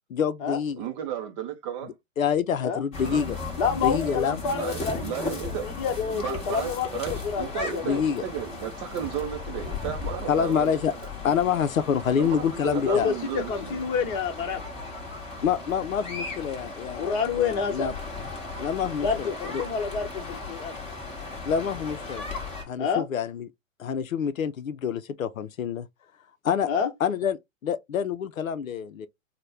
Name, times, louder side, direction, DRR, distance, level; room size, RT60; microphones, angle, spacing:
voice 1, 0.1-0.9 2.2-3.4 3.8-4.4 7.8-8.2 10.3-10.9 11.2-13.1 15.4-17.9 18.6-19.6 21.5-22.3 22.7-23.5 23.8-25.9 26.4-26.7 27.0-29.1, left 7 dB, 85° left, 0.6 m, -27 dB
voice 2, 0.8-1.9 3.0-3.2 4.6-5.8 6.1-10.8 12.2-13.8, right 9 dB, 25° right, 0.5 m, -34 dB
sound 1, 2.9-22.6, left 3 dB, 15° left, 1.0 m, -36 dB
voice 3, 3.6-8.0 12.8-14.6 16.9-17.9 19.0-20.8 22.8-23.1 26.7-26.9, left 6 dB, 40° left, 1.1 m, -28 dB
4.1 x 2.1 x 3.3 m
hypercardioid pair, 120°, 40 cm